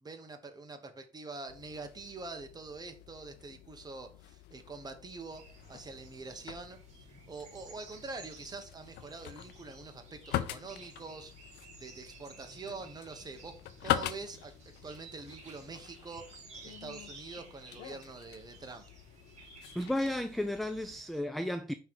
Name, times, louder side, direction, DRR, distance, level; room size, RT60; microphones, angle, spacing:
voice 1, 0.0-5.4 5.7-13.5 13.8-14.5 14.8-18.8, right 3 dB, 25° right, 1.1 m, -45 dB
sound 1, 1.5-21.0, left 12 dB, 80° left, 0.6 m, -43 dB
sound 2, 5.3-21.2, right 3 dB, 40° right, 2.8 m, -55 dB
voice 2, 19.8-21.7, left 1 dB, ahead, 0.3 m, -33 dB
5.5 x 3.8 x 4.5 m
cardioid pair, 110°, 17 cm